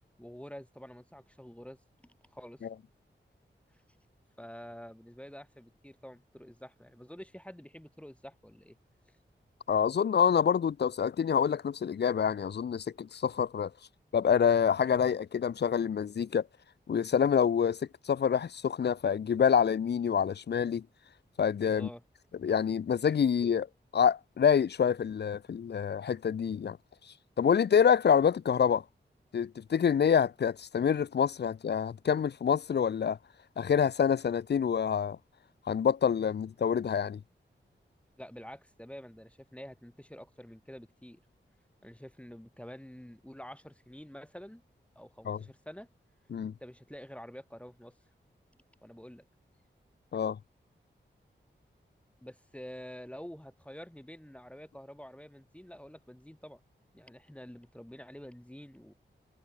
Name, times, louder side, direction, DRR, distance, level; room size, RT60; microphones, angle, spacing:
voice 1, 0.2-2.6 4.4-8.8 21.7-22.0 38.2-41.2 41.8-44.6 44.9-45.9 46.6-47.9 48.8-49.3 52.2-56.6 56.9-58.9, equal, 5° left, 1.3 m, -48 dB
voice 2, 9.7-13.7 14.1-16.4 16.9-17.8 18.1-20.9 21.4-21.9 22.4-23.7 23.9-26.8 27.4-28.8 29.3-33.2 33.6-35.2 35.7-37.2 45.3-45.4 46.3-46.5 50.1-50.4, left 7 dB, 60° left, 0.5 m, -27 dB
cardioid pair, 50°, 20 cm